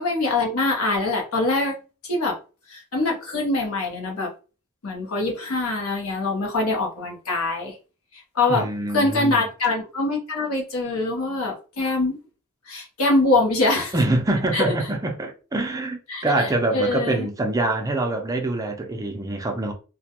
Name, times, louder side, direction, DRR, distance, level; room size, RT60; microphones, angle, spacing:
voice 1, 0.0-1.7 2.0-2.4 2.7-4.3 4.8-7.8 8.3-8.7 8.9-12.2 12.7-13.9 14.5-14.6 16.1-17.3, left 2 dB, 75° left, 0.8 m, -24 dB
voice 2, 8.5-9.4 13.9-19.7, right 2 dB, 15° right, 0.4 m, -25 dB
2.3 x 2.2 x 2.8 m
head